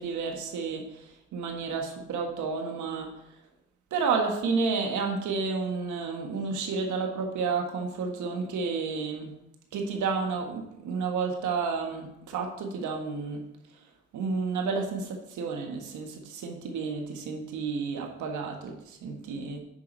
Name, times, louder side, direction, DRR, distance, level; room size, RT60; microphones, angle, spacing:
voice 1, 0.0-3.4 3.9-9.3 9.7-19.6, right 4 dB, 80° right, 3 dB, 1.6 m, -31 dB
9.6 x 5.9 x 4.0 m, 0.84 s
cardioid pair, 90°, 30 cm